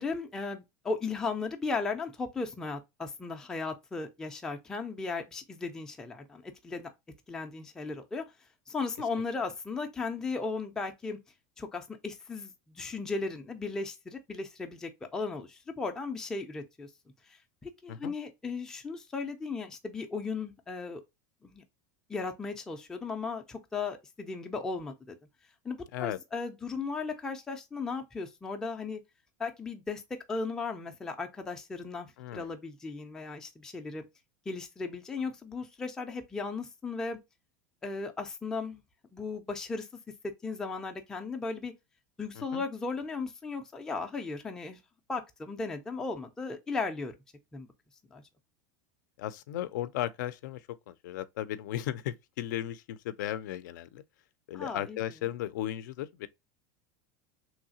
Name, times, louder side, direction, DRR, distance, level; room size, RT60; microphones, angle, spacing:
voice 1, 0.0-6.9 7.3-8.2 8.7-11.2 11.6-16.9 17.3-21.0 21.4-21.6 22.1-25.2 25.6-29.0 29.4-32.1 32.3-34.1 34.5-37.2 37.8-38.8 39.1-39.9 40.4-41.7 42.2-44.8 45.1-47.1 47.5-47.7 48.1-48.2 54.5-55.0, left 4 dB, 5° left, 0.3 m, -36 dB
voice 2, 32.2-32.5 42.4-42.6 49.2-54.0 54.5-56.3, left 12 dB, 75° left, 0.4 m, -36 dB
3.1 x 2.7 x 2.6 m
supercardioid pair, 180°, 10 cm